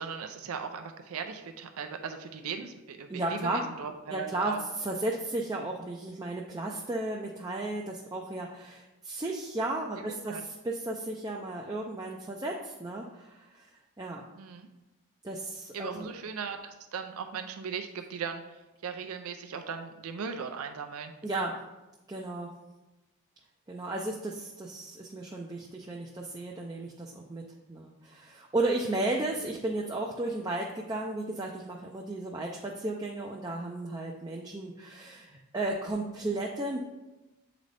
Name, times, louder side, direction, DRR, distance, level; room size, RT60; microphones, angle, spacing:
voice 1, 0.0-4.6 10.0-10.4 14.3-14.7 15.7-21.1 29.1-29.3, right 6 dB, 80° right, 6 dB, 0.5 m, -38 dB
voice 2, 3.1-3.6 4.1-13.7 14.0-14.2 15.2-16.1 21.2-21.5 22.1-22.5 23.7-27.4 27.7-36.8, right 2 dB, 15° right, -1 dB, 0.4 m, -34 dB
8.3 x 3.9 x 3.3 m, 1.0 s
head